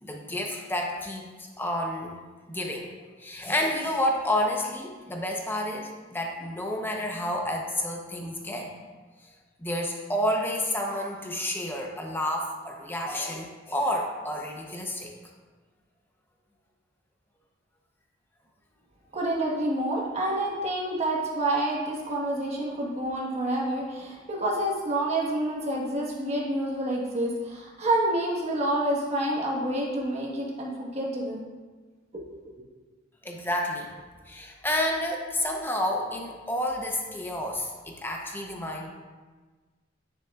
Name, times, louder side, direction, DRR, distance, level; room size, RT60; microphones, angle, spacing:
voice 1, 0.0-1.3 1.6-2.2 2.5-2.9 3.2-8.7 9.6-15.1 33.2-34.0 34.3-38.9, left 1 dB, 10° left, 1 dB, 0.8 m, -30 dB
voice 2, 19.1-31.4 32.1-32.5, right 1 dB, 35° right, -3 dB, 1.4 m, -28 dB
9.5 x 6.8 x 2.4 m, 1.4 s
head